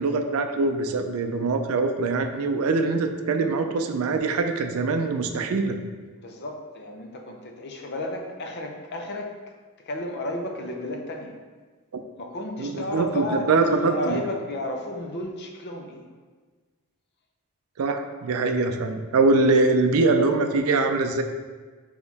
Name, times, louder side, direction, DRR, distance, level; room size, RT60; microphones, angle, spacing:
voice 1, 0.0-5.8 12.6-14.2 17.8-21.2, right 3 dB, 70° right, 6 dB, 0.4 m, -23 dB
voice 2, 6.2-11.4 12.2-16.0 19.4-19.7, left 1 dB, 50° left, 3 dB, 0.5 m, -32 dB
4.0 x 3.0 x 4.0 m, 1.4 s
head